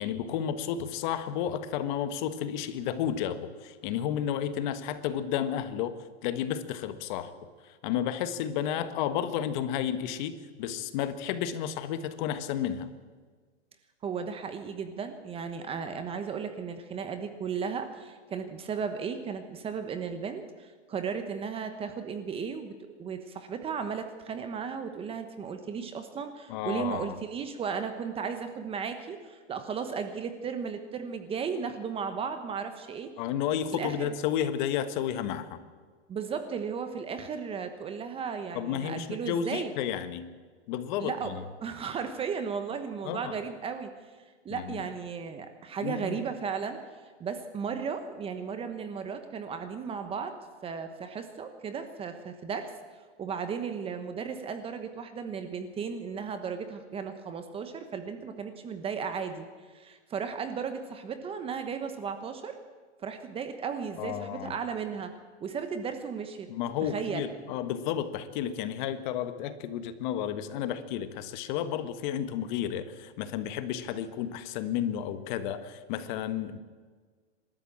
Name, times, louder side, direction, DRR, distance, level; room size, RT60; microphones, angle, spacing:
voice 1, 0.0-6.0 6.2-7.3 7.6-12.9 26.5-27.2 33.2-35.6 38.5-40.2 40.7-41.4 43.0-43.3 44.5-44.8 45.8-46.2 64.0-64.5 66.5-76.6, left 9 dB, 40° left, 11 dB, 1.4 m, -32 dB
voice 2, 14.0-22.7 23.0-33.1 33.7-34.1 36.1-39.7 41.0-41.3 41.6-43.9 44.4-46.8 47.2-50.3 50.6-52.7 53.2-59.5 59.7-62.6 63.0-65.1 65.4-66.5 66.8-67.3, right 6 dB, 15° right, 8 dB, 1.1 m, -35 dB
25.0 x 13.0 x 8.7 m, 1.5 s
hypercardioid pair, 150°, 36 cm